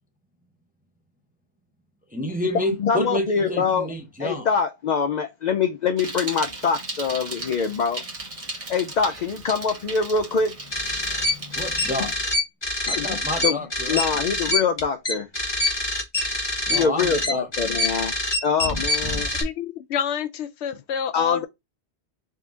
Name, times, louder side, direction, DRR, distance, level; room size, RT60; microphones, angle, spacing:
voice 1, 2.1-4.5 11.5-12.3 12.9-14.3 16.7-17.5, left 1 dB, 10° right, 0.5 m, -29 dB
voice 2, 2.8-3.9 4.2-8.0 8.7-10.5 12.9-13.2 13.4-13.6 13.9-15.3 16.7-18.1 18.4-19.3 21.1-21.5, left 5 dB, 55° left, 0.5 m, -24 dB
Bicycle, 6.0-12.1, right 2 dB, 35° right, 1.0 m, -36 dB
sound 1, 10.7-19.4, left 2 dB, 25° left, 1.0 m, -25 dB
voice 3, 19.4-21.5, left 8 dB, 75° left, 0.9 m, -28 dB
3.7 x 2.8 x 3.5 m
omnidirectional pair, 1.1 m